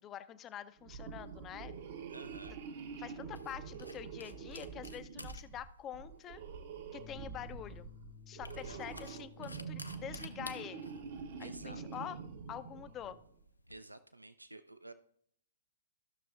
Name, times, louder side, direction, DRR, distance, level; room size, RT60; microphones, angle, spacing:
voice 1, 0.0-1.7 3.0-6.4 6.9-7.9 8.3-10.9 11.4-12.2 12.5-13.2, left 10 dB, 25° left, 13 dB, 0.4 m, -46 dB
sound 1, 0.8-13.3, right 6 dB, 50° right, 0.8 m, -46 dB
sound 2, 1.1-13.8, left 2 dB, 90° left, 0.6 m, -55 dB
voice 2, 2.1-2.6 8.6-8.8 11.4-11.8 13.7-14.9, right 2 dB, 85° right, 12 dB, 0.4 m, -51 dB
Bass guitar, 7.0-13.2, left 11 dB, 55° left, 1.0 m, -59 dB
15.0 x 6.1 x 2.4 m, 0.68 s
figure-of-eight pair, 115°, 0 cm